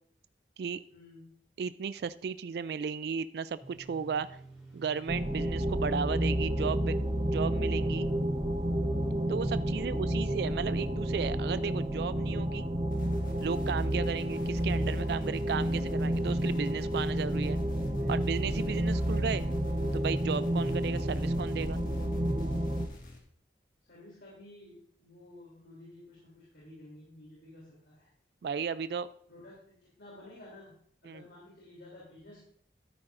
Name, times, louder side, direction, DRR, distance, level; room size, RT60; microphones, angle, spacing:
voice 1, 0.9-1.3 9.7-10.2 18.0-18.1 18.8-19.2 23.8-28.1 29.3-30.7 31.0-32.4, left 1 dB, 80° left, -6 dB, 3.2 m, -52 dB
voice 2, 1.6-4.4 4.7-7.0 7.3-8.1 9.3-12.7 13.4-17.6 18.1-19.4 19.9-21.8 28.4-29.1 31.0-31.2, right 6 dB, 65° right, 15 dB, 0.3 m, -34 dB
sound 1, 3.6-17.1, right 3 dB, 5° right, 4.9 m, -54 dB
sound 2, 5.1-22.9, right 1 dB, 30° right, 0.9 m, -30 dB
sound 3, 12.9-23.2, left 1 dB, 50° left, 1.9 m, -52 dB
12.5 x 9.9 x 2.6 m, 0.63 s
head